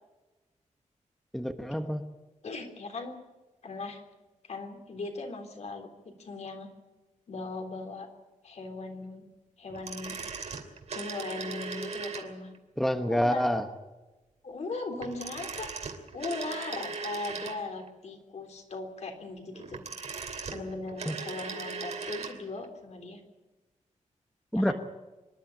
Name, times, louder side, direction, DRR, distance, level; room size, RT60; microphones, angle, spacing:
voice 1, 1.3-2.0 12.8-13.6 21.1-21.2 24.5-24.7, equal, ahead, 7 dB, 1.1 m, -27 dB
voice 2, 2.4-3.2 3.6-4.0 4.4-6.7 7.3-8.1 8.4-9.3 9.6-10.2 10.9-12.5 13.1-13.5 14.4-15.7 16.1-19.8 20.5-23.2 24.5-24.7, left 3 dB, 60° left, 4 dB, 3.5 m, -38 dB
sound 1, 9.7-12.6 15.0-17.9 19.5-22.4 22.6-22.7, right 5 dB, 60° right, 2.8 m, -38 dB
25.5 x 11.5 x 9.9 m, 1.1 s
wide cardioid pair, 145°, 13 cm